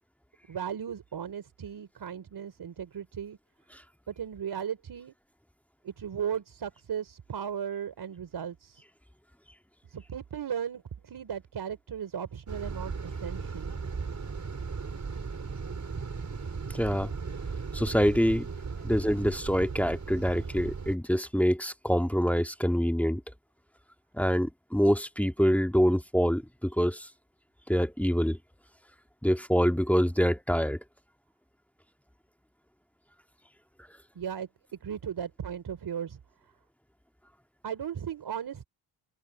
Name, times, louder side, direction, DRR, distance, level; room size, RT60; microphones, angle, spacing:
voice 1, 0.5-3.4 4.1-5.1 5.8-8.8 9.9-13.7 34.1-34.5 34.8-36.2 37.6-38.7, right 8 dB, 55° right, 4.6 m, -36 dB
sound 1, 12.5-21.0, right 5 dB, 40° right, 5.0 m, -36 dB
voice 2, 16.7-17.1 17.7-18.5 18.8-23.2 24.1-27.1 27.7-28.4 29.2-30.8, equal, 5° left, 1.8 m, -25 dB
open air
supercardioid pair, 65°, 45 cm